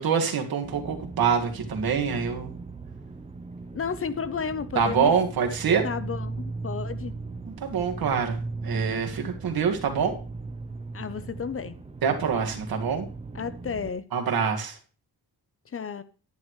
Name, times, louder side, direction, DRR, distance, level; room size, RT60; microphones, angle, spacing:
voice 1, 0.0-2.5 4.7-5.9 7.6-10.2 12.0-13.1 14.1-14.8, right 6 dB, 65° right, 2.0 m, -25 dB
sound 1, 0.6-13.9, right 3 dB, 15° right, 0.8 m, -38 dB
voice 2, 3.7-5.2 5.8-7.1 10.9-11.7 13.3-14.1 15.7-16.0, left 6 dB, 35° left, 0.6 m, -32 dB
11.0 x 10.5 x 3.2 m
cardioid pair, 115°, 38 cm